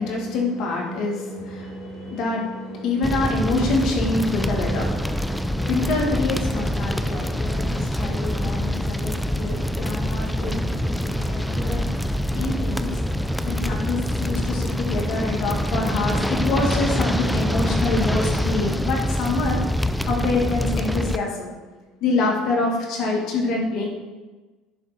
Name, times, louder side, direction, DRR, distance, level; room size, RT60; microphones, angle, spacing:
voice 1, 0.0-19.6 20.1-21.5 22.0-23.9, left 3 dB, 60° left, 0 dB, 1.9 m, -26 dB
Roaring House Fire Wall Fall In, 3.0-21.2, equal, ahead, 0.4 m, -25 dB
10.5 x 3.7 x 4.2 m, 1.2 s
supercardioid pair, 115°, 0 cm